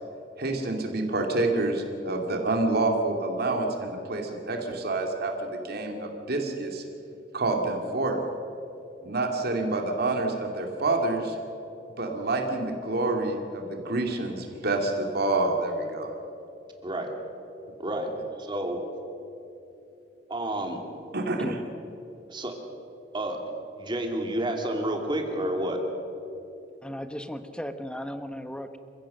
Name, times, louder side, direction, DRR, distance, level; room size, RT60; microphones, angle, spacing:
voice 1, 0.4-6.8 7.3-8.2 9.0-11.4 12.0-16.1 21.1-21.6, right 2 dB, 60° right, 3 dB, 2.4 m, -27 dB
voice 2, 17.8-18.1 18.4-18.8 20.3-20.8 22.3-22.5 23.1-23.4 23.8-25.8, right 1 dB, 25° right, 3 dB, 2.7 m, -29 dB
voice 3, 26.8-28.8, equal, 5° left, 9 dB, 1.0 m, -36 dB
28.0 x 16.0 x 6.6 m, 2.9 s
head